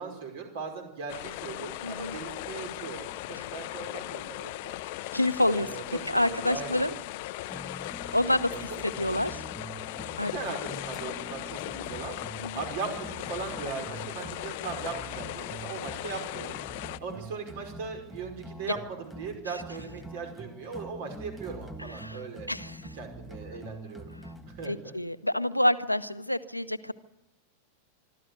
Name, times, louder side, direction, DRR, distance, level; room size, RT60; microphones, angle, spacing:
voice 1, 0.0-4.7 5.5-6.9 8.7-8.8 10.2-12.2 12.5-16.6 17.0-22.5 22.9-24.1 24.5-25.0, right 5 dB, 50° right, 5 dB, 5.3 m, -39 dB
sound 1, 1.1-17.0, left 17 dB, 50° left, 0.7 m, -38 dB
voice 2, 1.8-2.2 3.3-3.4 5.1-5.7 6.1-6.9 8.1-9.4 10.2-10.3 12.4-12.5 21.8-22.2 22.5-22.9 24.2-24.3 24.6-26.9, left 1 dB, 90° left, 12 dB, 1.0 m, -28 dB
sound 2, 7.5-24.7, right 1 dB, 5° right, 1.5 m, -45 dB
25.5 x 13.0 x 9.6 m, 0.90 s
figure-of-eight pair, 90°, 0 cm